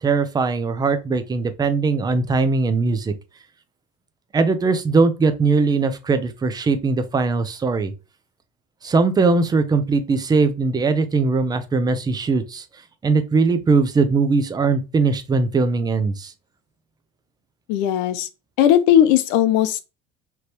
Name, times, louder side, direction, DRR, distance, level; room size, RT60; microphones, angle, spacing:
voice 1, 0.0-3.1 4.3-7.9 8.8-12.6 13.0-16.3, right 4 dB, 20° right, 0.7 m, -20 dB
voice 2, 17.7-18.3 18.6-19.8, left 10 dB, 75° left, 0.7 m, -17 dB
5.1 x 3.0 x 3.0 m
supercardioid pair, 120°, 19 cm